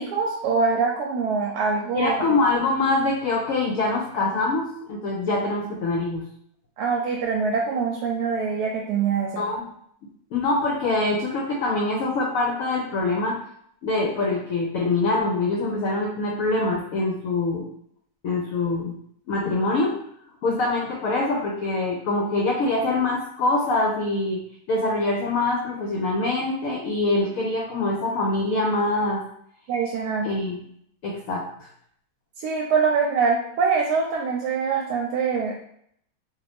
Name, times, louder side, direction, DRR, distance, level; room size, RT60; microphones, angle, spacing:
voice 1, 0.0-2.2 6.8-9.5 29.7-30.3 32.4-35.6, right 5 dB, 85° right, 0 dB, 1.1 m, -24 dB
voice 2, 1.9-6.2 9.4-9.6 10.3-13.4 13.8-17.7 18.2-18.9 19.3-20.0 20.4-24.4 24.7-29.2 30.2-30.6 31.0-31.7, left 2 dB, 70° left, -1 dB, 0.9 m, -24 dB
2.7 x 2.5 x 3.3 m, 0.68 s
omnidirectional pair, 1.7 m